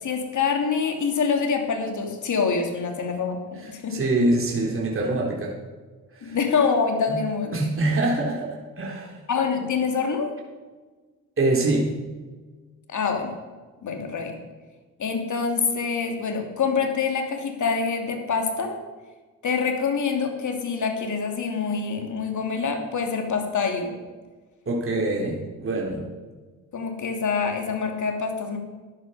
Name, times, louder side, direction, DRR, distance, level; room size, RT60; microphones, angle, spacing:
voice 1, 0.0-4.0 6.2-7.5 9.3-10.3 12.9-13.3 13.8-14.4 15.0-18.8 19.4-24.0 26.7-28.6, left 5 dB, 50° left, 4 dB, 3.0 m, -25 dB
voice 2, 3.9-5.5 6.1-6.4 7.1-7.2 7.5-9.2 11.4-12.0 24.7-26.1, right 2 dB, 35° right, -2 dB, 3.6 m, -24 dB
13.5 x 11.0 x 5.1 m, 1.3 s
hypercardioid pair, 60°, 37 cm